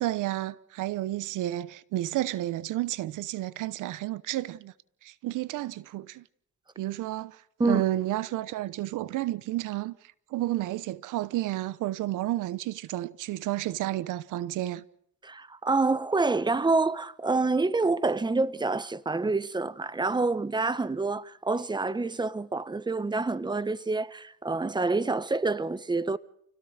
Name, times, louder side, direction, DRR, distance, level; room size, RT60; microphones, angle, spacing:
voice 1, 0.0-4.7 5.0-6.2 6.8-10.0 10.3-14.8, right 15 dB, 90° right, 1.0 m, -31 dB
voice 2, 15.2-26.2, right 3 dB, 15° right, 1.1 m, -27 dB
29.5 x 17.5 x 6.5 m
cardioid pair, 90°, 30 cm